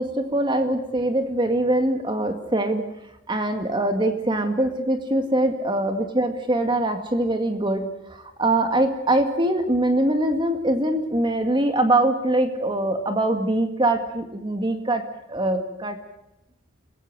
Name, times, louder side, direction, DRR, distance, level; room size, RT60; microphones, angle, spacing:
voice 1, 0.0-2.8 3.3-15.0 15.3-16.0, right 1 dB, 20° right, 6 dB, 2.1 m, -23 dB
29.0 x 17.0 x 7.8 m, 0.84 s
head